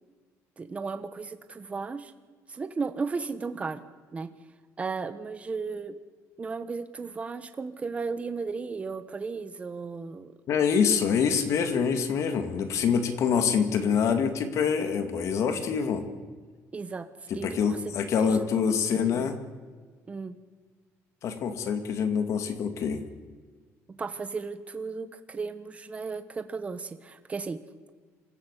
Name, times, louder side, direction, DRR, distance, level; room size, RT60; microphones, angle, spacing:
voice 1, 0.6-2.1 2.5-3.8 4.1-4.3 4.8-6.0 6.4-10.3 16.7-17.1 17.3-17.8 18.2-18.6 19.0-19.3 20.1-20.4 24.0-27.6, right 4 dB, 25° right, 10 dB, 1.3 m, -35 dB
voice 2, 10.5-16.0 17.3-19.4 21.2-23.0, left 6 dB, 55° left, 8 dB, 2.2 m, -25 dB
26.5 x 14.5 x 8.4 m, 1.5 s
cardioid pair, 130°, 6 cm